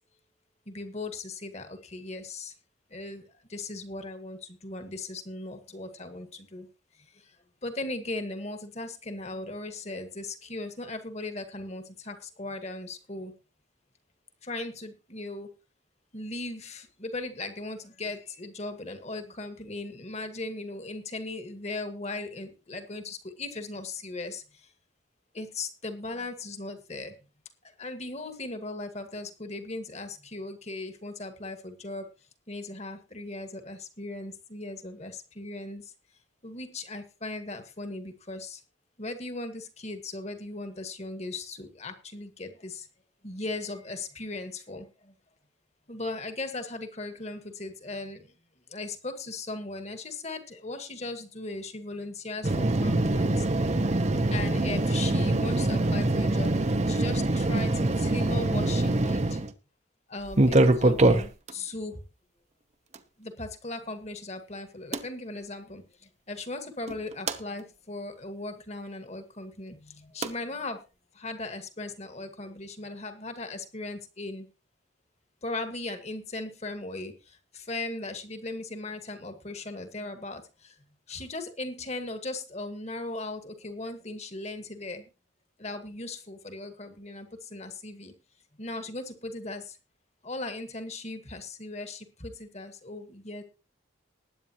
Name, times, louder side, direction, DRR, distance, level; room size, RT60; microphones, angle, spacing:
voice 1, 0.6-2.5 2.9-6.7 7.0-7.4 7.6-13.3 14.4-15.5 16.1-24.7 25.3-27.1 27.6-32.1 32.5-35.9 36.4-38.6 39.0-42.9 43.2-45.1 45.9-48.3 48.7-53.5 54.3-59.4 60.1-62.0 63.2-70.8 71.1-74.5 75.4-80.7 81.1-85.1 85.6-88.1 88.6-89.8 90.2-93.4, left 2 dB, 35° left, 8 dB, 1.8 m, -38 dB
sound 1, 52.4-59.5 60.3-61.5 62.9-63.0 64.9-65.0 66.9-67.4 70.2-70.3, right 2 dB, 35° right, 0.9 m, -24 dB
20.0 x 9.0 x 3.0 m, 0.31 s
head